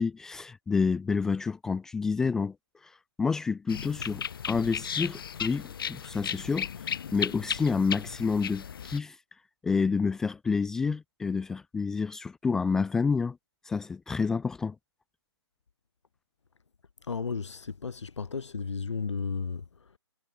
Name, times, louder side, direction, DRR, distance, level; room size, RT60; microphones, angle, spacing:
voice 1, 0.0-2.6 2.8-2.9 3.2-6.7 7.1-9.2 9.6-13.4 13.7-14.8, left 5 dB, 5° left, 0.4 m, -29 dB
sound 1, 3.7-9.0, left 8 dB, 50° left, 1.9 m, -35 dB
voice 2, 17.0-19.9, left 5 dB, 85° left, 1.1 m, -34 dB
hypercardioid pair, 155°, 15 cm